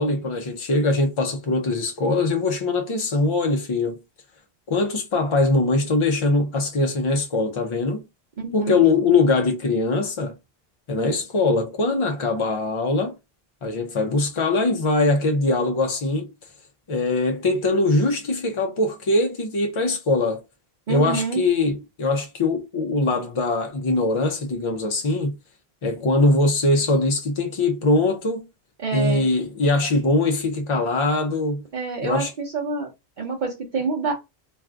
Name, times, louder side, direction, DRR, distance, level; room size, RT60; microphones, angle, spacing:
voice 1, 0.0-4.0 4.7-8.0 8.5-10.3 10.9-13.1 13.6-16.3 16.9-20.4 20.9-25.4 25.8-28.4 28.9-31.6 32.0-32.3, left 2 dB, 50° left, 0.4 m, -22 dB
voice 2, 8.4-8.8 20.9-21.4 28.8-29.3 31.7-32.9 33.2-34.1, right 4 dB, 55° right, 0.8 m, -27 dB
2.5 x 2.4 x 3.3 m
omnidirectional pair, 1.0 m